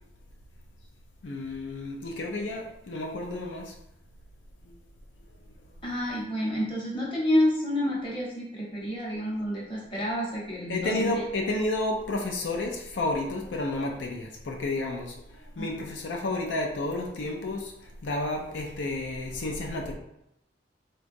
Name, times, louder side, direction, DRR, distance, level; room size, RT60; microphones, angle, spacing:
voice 1, 1.2-3.7 4.6-4.8 10.7-19.9, left 2 dB, 85° left, 1 dB, 0.5 m, -31 dB
voice 2, 5.8-11.2 15.6-15.7, left 1 dB, 25° left, -5 dB, 0.9 m, -29 dB
3.8 x 2.3 x 2.6 m, 0.82 s
head